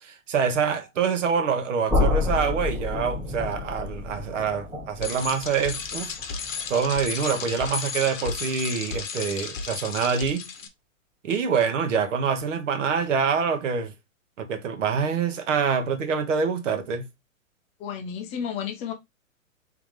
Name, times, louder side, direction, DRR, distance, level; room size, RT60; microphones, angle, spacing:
voice 1, 0.0-10.4 11.2-13.9 14.4-17.0, right 6 dB, 60° right, 1.0 m, -26 dB
sound 1, 1.9-7.8, left 3 dB, ahead, 1.3 m, -30 dB
Bicycle, 5.0-10.7, left 5 dB, 70° left, 1.0 m, -33 dB
voice 2, 17.8-18.9, left 8 dB, 15° left, 0.5 m, -32 dB
3.8 x 3.5 x 3.1 m
hypercardioid pair, 130°, 41 cm